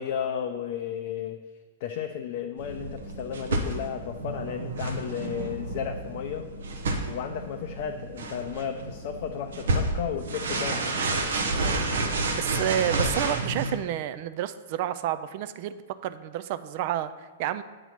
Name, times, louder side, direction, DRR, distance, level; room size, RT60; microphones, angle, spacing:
voice 1, 0.0-1.4 1.8-6.5 7.1-10.9, left 8 dB, 55° left, 4 dB, 0.4 m, -33 dB
sound 1, 2.6-13.7, right 2 dB, 75° right, 0.7 m, -30 dB
voice 2, 11.5-11.8 12.3-17.6, right 11 dB, 50° right, 13 dB, 0.4 m, -30 dB
8.2 x 2.9 x 5.6 m, 1.5 s
hypercardioid pair, 115°, 0 cm